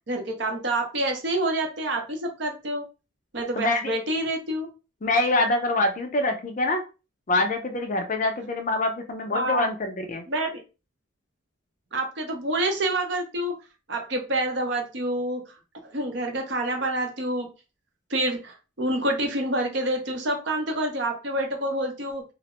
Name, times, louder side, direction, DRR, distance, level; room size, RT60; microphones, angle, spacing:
voice 1, 0.1-2.8 3.3-4.7 9.3-9.7 10.3-10.6 11.9-13.6 13.9-15.6 15.8-17.5 18.1-22.2, right 1 dB, 55° right, 2 dB, 0.7 m, -27 dB
voice 2, 3.6-4.0 5.0-6.8 7.3-10.2, left 2 dB, 40° left, 5 dB, 0.4 m, -25 dB
2.4 x 2.0 x 2.9 m, 0.30 s
head